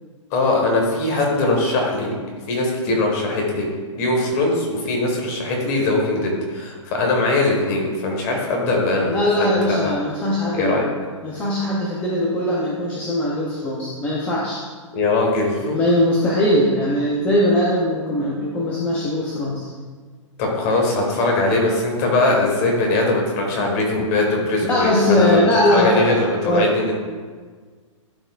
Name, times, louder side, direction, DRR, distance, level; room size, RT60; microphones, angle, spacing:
voice 1, 0.3-2.1 2.5-3.7 3.9-9.9 10.5-10.9 14.9-15.8 20.4-25.4 25.7-26.9, left 2 dB, 30° left, 0 dB, 1.3 m, -21 dB
voice 2, 9.1-10.8 11.2-14.6 15.7-19.7 24.7-26.7, left 1 dB, 10° left, -5 dB, 0.5 m, -20 dB
12.0 x 4.5 x 2.3 m, 1.5 s
hypercardioid pair, 165°, 17 cm